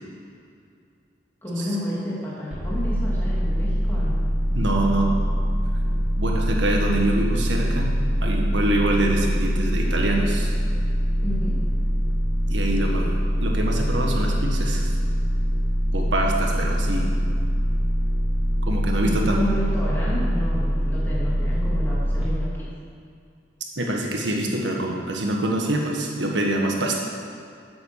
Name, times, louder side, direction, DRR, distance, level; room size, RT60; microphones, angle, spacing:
voice 1, 1.4-4.2 11.2-11.6 19.0-22.7, equal, 10° left, -8 dB, 2.2 m, -30 dB
sound 1, 2.5-22.2, equal, 5° right, 2.7 m, -23 dB
voice 2, 4.5-5.1 6.2-7.9 8.2-10.5 12.5-14.9 15.9-17.2 18.7-19.5 23.8-27.0, right 1 dB, 85° right, 0 dB, 1.6 m, -25 dB
8.9 x 7.2 x 6.6 m, 2.4 s
head